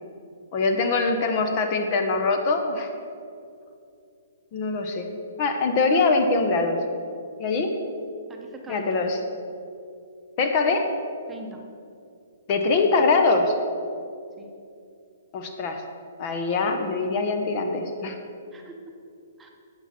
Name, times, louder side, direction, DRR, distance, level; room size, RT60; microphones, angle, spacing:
voice 1, 0.5-2.9 4.5-5.1 5.4-6.8 7.4-7.7 8.7-9.2 10.4-10.9 12.5-13.5 15.3-15.8 16.2-18.2, left 3 dB, 40° left, 5 dB, 0.9 m, -23 dB
voice 2, 8.3-9.0 11.3-11.6 14.4-14.5 18.5-18.9 19.4-19.5, right 2 dB, 10° right, 1 dB, 1.0 m, -43 dB
8.6 x 8.0 x 4.4 m, 2.5 s
hypercardioid pair, 135°, 0 cm